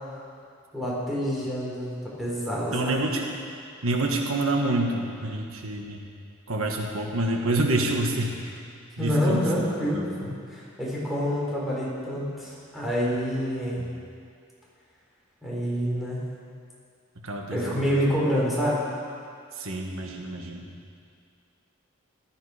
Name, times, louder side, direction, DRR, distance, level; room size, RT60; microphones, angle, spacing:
voice 1, 0.7-1.9 2.2-3.0 9.0-13.8 15.4-16.2 17.5-18.9, equal, ahead, -7 dB, 4.0 m, -27 dB
voice 2, 2.7-3.3 3.8-6.0 6.5-8.4 9.0-9.5 9.9-10.0 13.8-13.9 17.2-17.8 19.6-20.6, right 2 dB, 85° right, 1 dB, 1.5 m, -27 dB
16.0 x 12.5 x 5.0 m, 2.3 s
head